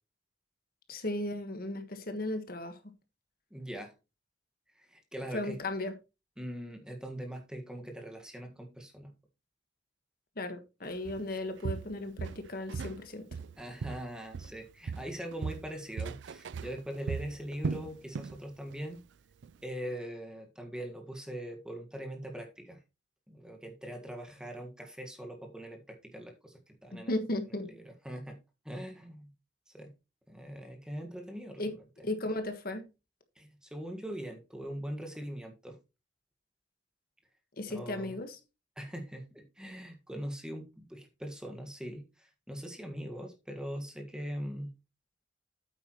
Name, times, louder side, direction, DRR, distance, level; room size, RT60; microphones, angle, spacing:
voice 1, 0.9-2.8 5.3-5.9 10.4-13.3 27.1-27.6 31.6-31.7 32.0-32.8 37.6-38.4, left 1 dB, 55° left, 1.5 m, -35 dB
voice 2, 3.5-3.9 4.7-5.6 6.4-9.1 13.6-19.0 19.6-22.8 23.3-27.2 27.6-29.3 29.7-29.9 30.3-32.1 33.3-35.8 37.7-38.2 38.8-44.7, equal, 5° right, 1.6 m, -42 dB
Walk footsteps, 11.0-11.3 11.6-13.0 13.3-14.6 14.9-18.4 18.7-19.0 19.4-19.5, right 5 dB, 75° right, 0.4 m, -38 dB
9.0 x 8.2 x 3.0 m
head